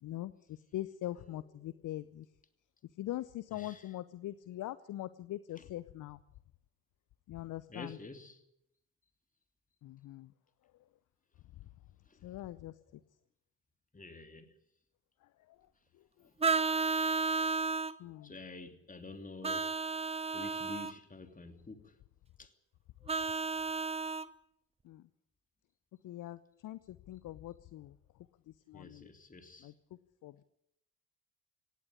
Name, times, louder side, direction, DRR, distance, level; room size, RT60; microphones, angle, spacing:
voice 1, 0.0-2.3 3.0-6.2 7.3-8.0 9.8-10.3 12.2-13.0 15.2-15.6 15.9-16.3 17.4-17.5 18.0-18.3 24.8-25.0 26.0-28.0 28.5-29.1 29.6-29.7 30.2-30.4, left 14 dB, 45° left, 0.8 m, -43 dB
voice 2, 1.2-1.8 3.5-3.9 5.6-5.7 7.7-8.4 12.0-12.2 13.9-14.6 16.2-16.5 18.2-19.8 20.3-22.0 22.4-22.5 28.7-29.7, left 3 dB, 20° left, 3.0 m, -49 dB
Vehicle horn car horn honking, 16.4-18.0 19.4-20.9 23.1-24.3, right 4 dB, 15° right, 0.9 m, -32 dB
17.5 x 16.5 x 10.0 m
figure-of-eight pair, 50°, 42 cm